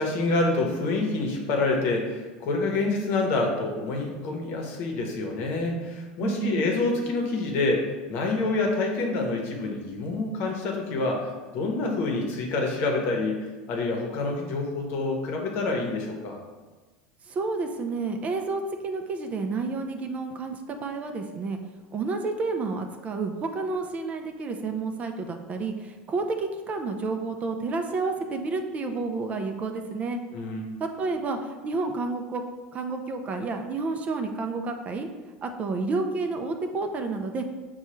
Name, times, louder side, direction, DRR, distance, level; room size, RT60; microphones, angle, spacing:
voice 1, 0.0-16.4 30.3-30.8, left 3 dB, 55° left, 1 dB, 0.8 m, -27 dB
voice 2, 6.2-6.7 17.3-21.6 21.9-30.2 30.8-32.4 32.7-35.1 35.4-37.4, right 3 dB, 30° right, 5 dB, 0.4 m, -30 dB
5.4 x 2.3 x 3.0 m, 1.3 s
supercardioid pair, 110°, 4 cm